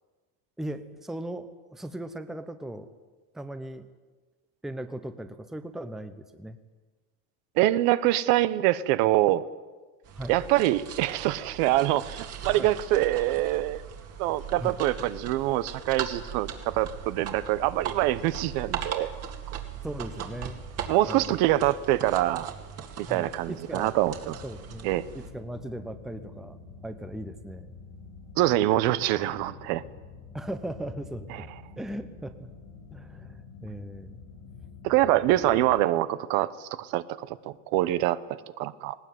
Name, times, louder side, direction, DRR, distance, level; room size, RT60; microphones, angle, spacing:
voice 1, 0.6-2.9 3.3-3.9 4.6-6.6 10.2-10.3 12.6-12.7 14.6-14.8 19.8-20.6 21.1-21.4 23.1-24.0 24.4-26.6 26.8-27.7 30.3-31.5 31.8-32.5 32.9-34.2, right 1 dB, ahead, 9 dB, 0.8 m, -38 dB
voice 2, 7.6-9.4 10.3-13.8 14.2-19.1 19.5-19.6 20.9-22.5 23.1-24.3 24.8-25.1 28.4-29.8 34.8-39.0, right 15 dB, 65° right, 15 dB, 1.1 m, -25 dB
sound 1, 10.0-25.3, right 8 dB, 40° right, 2.4 m, -39 dB
sound 2, 24.2-35.9, left 4 dB, 70° left, 3.6 m, -47 dB
19.5 x 19.0 x 9.4 m, 1.3 s
cardioid pair, 170°, 39 cm